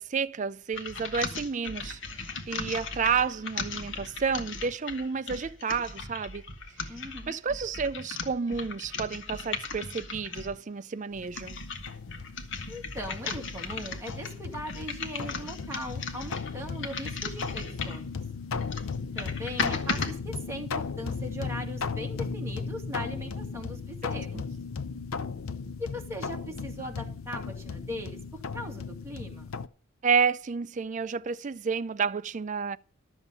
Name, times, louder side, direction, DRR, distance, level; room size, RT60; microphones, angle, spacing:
voice 1, 0.0-6.4 6.8-7.0 7.3-11.6 24.3-24.4 30.0-32.8, right 5 dB, 35° right, 0.4 m, -30 dB
sound 1, 0.7-10.6 11.1-18.1 18.5-20.1, left 4 dB, 55° left, 1.4 m, -37 dB
voice 2, 6.9-7.4 12.7-18.2 19.2-24.5 25.8-29.5, equal, 15° right, 2.2 m, -39 dB
sound 2, 11.1-29.7, left 5 dB, 75° left, 0.6 m, -36 dB
12.5 x 7.2 x 5.5 m
head